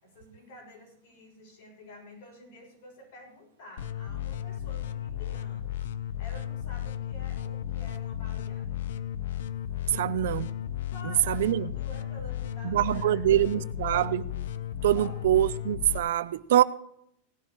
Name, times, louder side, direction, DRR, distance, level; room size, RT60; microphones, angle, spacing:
voice 1, 0.0-5.9 6.2-8.8 9.8-10.1 10.9-13.7 14.9-15.1, left 1 dB, 50° left, 6.4 m, -50 dB
sound 1, 3.8-16.0, left 11 dB, 70° left, 0.8 m, -34 dB
voice 2, 9.9-10.5 11.0-11.7 12.6-14.3 14.8-16.6, right 12 dB, 70° right, 0.6 m, -24 dB
18.0 x 11.5 x 3.1 m
supercardioid pair, 175°, 0 cm